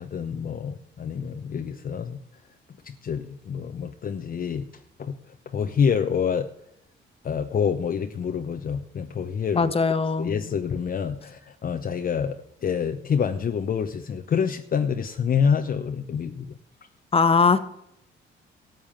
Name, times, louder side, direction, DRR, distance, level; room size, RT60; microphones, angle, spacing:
voice 1, 0.0-2.2 2.8-4.7 5.0-5.2 5.5-6.5 7.2-9.7 10.2-16.6, left 7 dB, 45° left, 6 dB, 0.9 m, -27 dB
voice 2, 9.5-10.3 17.1-17.6, left 5 dB, 30° left, 12 dB, 1.2 m, -20 dB
13.0 x 7.3 x 7.2 m, 0.79 s
cardioid pair, 90°, 20 cm